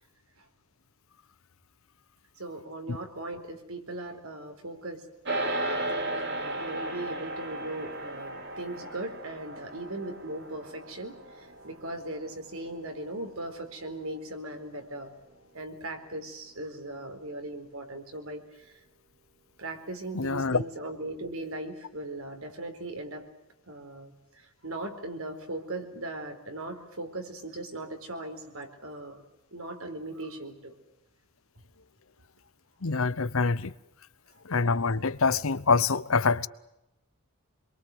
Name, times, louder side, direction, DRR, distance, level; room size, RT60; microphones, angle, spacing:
voice 1, 2.4-5.1 5.4-15.1 15.5-18.8 19.6-23.3 23.7-29.2 29.5-30.7, right 1 dB, 70° right, 4.3 m, -39 dB
sound 1, 5.2-14.8, right 1 dB, 50° right, 2.7 m, -36 dB
voice 2, 20.1-20.6 32.8-33.7 34.4-36.5, left 4 dB, 65° left, 0.9 m, -25 dB
27.5 x 23.0 x 7.9 m
head